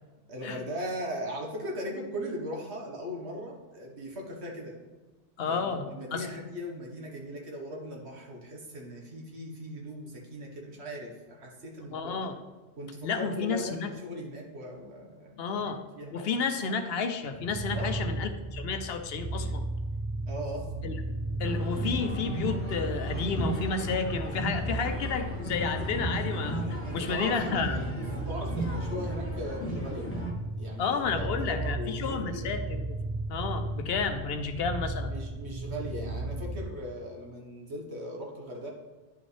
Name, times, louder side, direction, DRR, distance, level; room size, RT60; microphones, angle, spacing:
voice 1, 0.3-4.7 5.4-12.2 12.8-16.3 17.7-18.1 20.3-20.7 26.8-30.1 30.6-32.5 35.1-38.7, equal, 75° right, 0 dB, 1.6 m, -39 dB
voice 2, 5.4-6.3 11.9-12.4 13.0-13.9 15.4-15.8 16.1-19.6 20.8-20.9 21.4-27.9 30.8-33.0 33.3-35.1, left 5 dB, 65° left, 7 dB, 0.8 m, -31 dB
sound 1, 17.3-36.6, right 2 dB, 40° right, 0.4 m, -35 dB
sound 2, 21.4-30.3, right 1 dB, 15° left, 1.1 m, -35 dB
10.0 x 5.2 x 3.3 m, 1.2 s
omnidirectional pair, 1.1 m